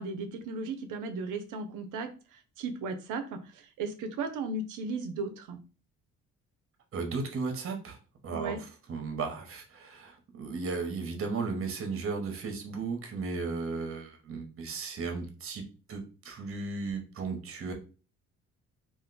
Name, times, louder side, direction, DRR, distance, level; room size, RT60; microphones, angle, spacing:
voice 1, 0.0-5.6 8.3-8.6, right 3 dB, 85° right, 7 dB, 0.6 m, -36 dB
voice 2, 6.9-8.0 8.2-8.6 8.9-17.7, right 4 dB, 45° right, 4 dB, 0.9 m, -35 dB
2.5 x 2.1 x 3.9 m, 0.34 s
cardioid pair, 90°, 30 cm